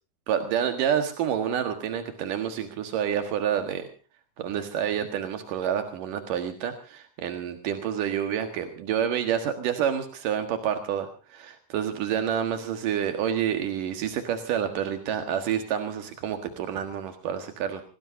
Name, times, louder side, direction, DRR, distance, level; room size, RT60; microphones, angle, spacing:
voice 1, 0.3-3.9 4.4-17.8, right 9 dB, 85° right, 6 dB, 3.3 m, -28 dB
27.5 x 18.5 x 2.7 m, 0.35 s
omnidirectional pair, 3.7 m